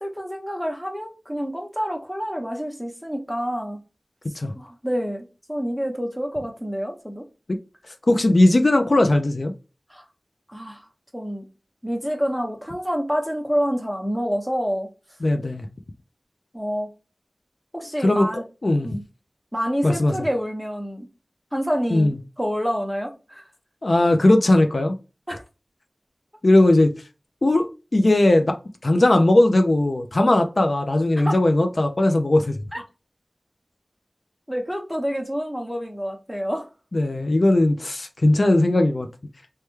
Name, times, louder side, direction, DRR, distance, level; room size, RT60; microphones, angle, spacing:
voice 1, 0.0-3.8 4.5-7.2 9.9-10.0 10.5-10.8 11.1-11.5 11.8-14.9 16.5-16.9 17.7-18.4 18.8-19.0 19.5-21.1 21.5-23.4 25.3-25.4 31.2-31.4 32.7-32.8 34.5-36.7, equal, ahead, 0.8 m, -27 dB
voice 2, 8.1-9.5 15.2-15.7 18.0-18.3 18.6-18.9 19.8-20.1 21.9-22.2 23.8-25.0 26.4-26.9 27.4-28.6 28.8-32.6 36.9-39.1, left 1 dB, 60° left, 0.3 m, -18 dB
3.2 x 2.2 x 3.0 m
wide cardioid pair, 50°, 0 cm